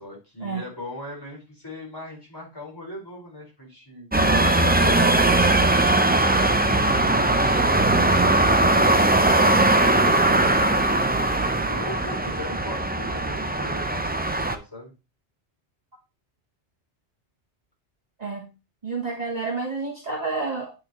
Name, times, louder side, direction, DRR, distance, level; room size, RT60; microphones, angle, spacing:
voice 1, 0.0-5.8 11.5-14.9, left 1 dB, 20° left, -4 dB, 5.0 m, -40 dB
sound 1, 4.1-14.6, right 2 dB, 15° right, 0.3 m, -20 dB
voice 2, 18.8-20.7, right 4 dB, 35° right, -1 dB, 1.3 m, -29 dB
8.8 x 6.4 x 3.1 m, 0.29 s
omnidirectional pair, 1.2 m